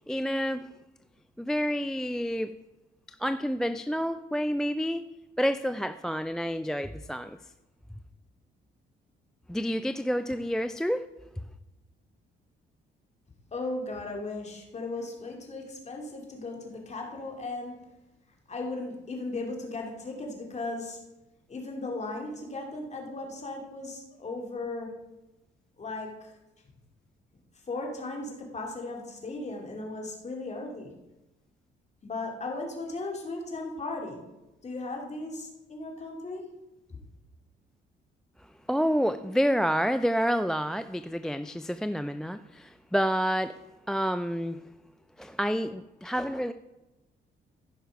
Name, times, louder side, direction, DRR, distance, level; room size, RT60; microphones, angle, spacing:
voice 1, 0.1-0.7 1.4-2.6 3.2-5.0 5.4-7.4 9.5-11.1 38.7-43.5 43.9-44.6 45.2-46.5, equal, 5° left, 11 dB, 0.3 m, -28 dB
voice 2, 13.5-17.8 18.5-21.0 21.5-24.9 25.8-26.3 27.7-30.9 32.0-34.2 34.6-36.5, left 2 dB, 35° left, 1 dB, 2.6 m, -36 dB
14.5 x 5.7 x 5.2 m, 0.99 s
cardioid pair, 90°, 20 cm